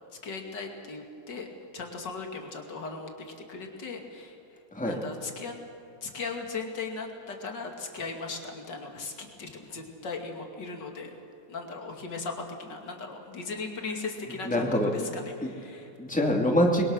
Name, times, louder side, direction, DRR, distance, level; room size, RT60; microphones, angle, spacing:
voice 1, 0.2-1.5 1.7-5.5 6.0-11.2 11.5-15.9, left 4 dB, 70° left, 3 dB, 3.1 m, -38 dB
voice 2, 14.4-15.1 15.4-15.5 16.0-16.9, equal, 5° left, 1 dB, 2.5 m, -25 dB
27.0 x 22.0 x 6.5 m, 2.8 s
omnidirectional pair, 2.0 m